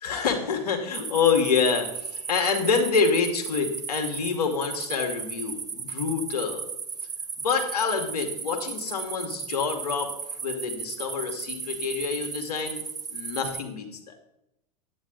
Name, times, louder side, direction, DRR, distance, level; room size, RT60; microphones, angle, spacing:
voice 1, 0.0-6.6 7.4-10.1 10.4-12.8 13.1-14.2, left 5 dB, 70° left, 4 dB, 2.2 m, -27 dB
sound 1, 0.9-13.6, right 6 dB, 20° right, 1.1 m, -36 dB
10.5 x 9.1 x 3.9 m, 0.86 s
hypercardioid pair, 95°, 20 cm